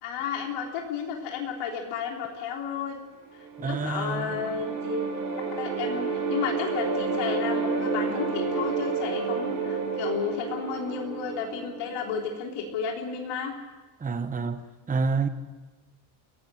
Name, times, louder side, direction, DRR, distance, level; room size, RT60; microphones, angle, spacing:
voice 1, 0.0-3.0 3.6-5.0 5.6-13.5, left 6 dB, 85° left, 3.8 m, -32 dB
sound 1, 3.3-12.4, right 4 dB, 75° right, 7.8 m, -30 dB
voice 2, 3.6-4.4 14.0-14.6 14.9-15.3, right 4 dB, 15° right, 0.9 m, -28 dB
29.5 x 17.5 x 6.4 m
cardioid pair, 145°, 50 cm